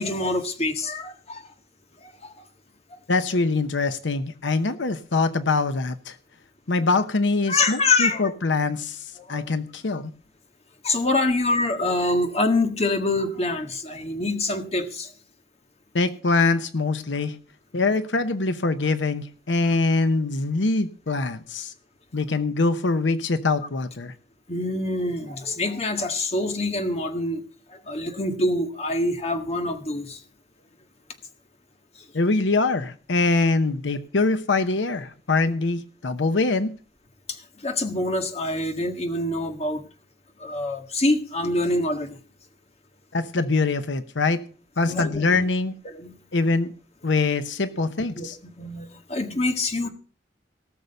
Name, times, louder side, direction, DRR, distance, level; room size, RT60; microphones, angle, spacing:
voice 1, 0.0-1.4 2.2-2.3 7.5-8.3 9.3-9.5 10.8-15.1 24.5-27.4 27.7-30.2 37.6-39.9 40.4-42.1 44.8-45.5 45.8-46.2 48.1-48.3 48.6-49.9, left 2 dB, 35° left, 6 dB, 1.7 m, -25 dB
voice 2, 3.1-6.2 6.7-10.1 15.9-17.4 17.7-21.7 22.1-24.1 32.1-36.7 43.1-44.4 44.8-45.7 46.3-46.7 47.0-48.4, left 3 dB, 80° left, 11 dB, 0.8 m, -23 dB
18.0 x 6.8 x 6.7 m, 0.40 s
head